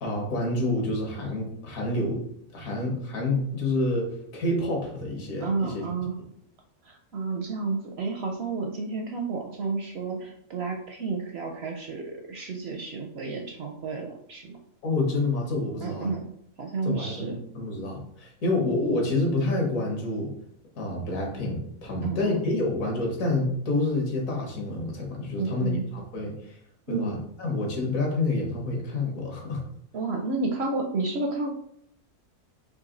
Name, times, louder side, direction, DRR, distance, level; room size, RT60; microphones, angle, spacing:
voice 1, 0.0-2.2 2.5-5.8 6.2-6.3 14.8-16.1 16.8-20.3 20.8-26.6 26.9-29.6, left 2 dB, 65° left, 0 dB, 1.5 m, -28 dB
voice 2, 5.4-6.2 6.8-14.6 15.8-16.3 16.6-17.4 22.0-22.4 25.4-25.8 26.9-27.1 29.9-31.5, right 4 dB, 65° right, 2 dB, 0.6 m, -31 dB
4.0 x 2.8 x 3.8 m, 0.70 s
omnidirectional pair, 1.6 m